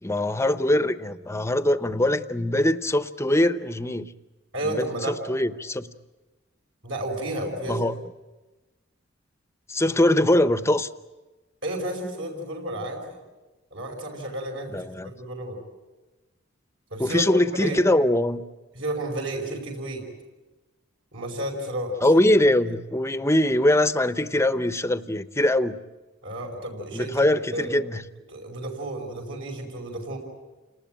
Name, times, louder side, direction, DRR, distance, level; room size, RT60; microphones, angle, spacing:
voice 1, 0.0-4.1 4.7-5.9 7.7-7.9 9.7-10.9 14.7-15.1 17.0-18.4 22.0-25.8 26.9-28.0, left 1 dB, 15° left, 12 dB, 0.8 m, -22 dB
voice 2, 4.5-5.1 6.8-7.9 11.6-13.2 13.7-14.8 15.0-15.6 16.9-17.8 18.7-20.0 21.1-22.0 26.2-27.2 27.5-27.7 28.3-30.2, right 1 dB, 70° right, 2 dB, 5.4 m, -32 dB
29.5 x 19.5 x 9.0 m, 1.2 s
head